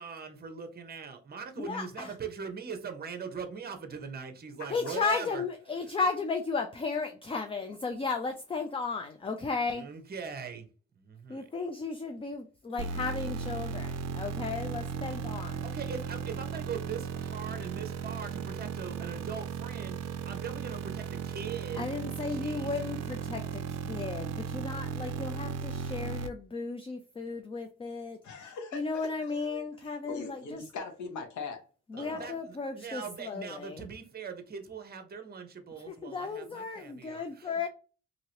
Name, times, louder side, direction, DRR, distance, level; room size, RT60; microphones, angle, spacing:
voice 1, 0.0-5.4 9.7-10.7 11.0-11.4 15.4-21.9 22.3-22.9 32.0-37.7, right 6 dB, 30° right, 0.8 m, -41 dB
voice 2, 1.6-2.1 4.7-9.9 11.3-15.7 21.8-28.2 28.7-30.6 31.9-33.9 35.9-37.7, left 4 dB, 20° left, 0.4 m, -35 dB
sound 1, 12.8-26.3, right 6 dB, 60° right, 0.5 m, -36 dB
voice 3, 28.2-31.6 31.9-32.3, left 4 dB, 70° left, 1.0 m, -41 dB
2.9 x 2.8 x 2.8 m
cardioid pair, 90°, 30 cm